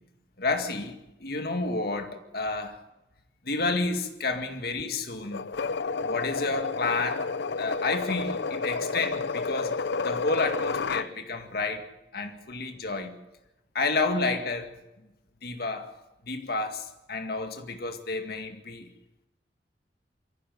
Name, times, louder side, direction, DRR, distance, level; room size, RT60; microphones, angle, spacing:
voice 1, 0.4-2.8 3.5-5.5 6.0-7.3 7.6-9.8 10.0-11.9 12.1-13.2 13.7-14.7 15.4-15.9 16.2-18.9, left 3 dB, 60° left, 2.1 m, -30 dB
sound 1, 5.3-11.1, left 4 dB, 75° left, 0.6 m, -30 dB
23.0 x 15.0 x 7.9 m
head